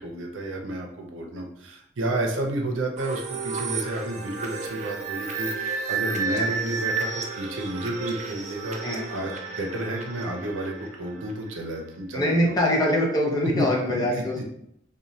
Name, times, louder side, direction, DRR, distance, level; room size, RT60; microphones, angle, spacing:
voice 1, 0.0-12.6 13.4-13.7 13.9-14.4, right 1 dB, 90° right, 2 dB, 0.6 m, -31 dB
sound 1, 3.0-11.6, right 4 dB, 35° right, 0.3 m, -32 dB
voice 2, 12.1-14.4, left 1 dB, 20° left, -3 dB, 0.5 m, -23 dB
3.0 x 2.2 x 2.6 m, 0.75 s
head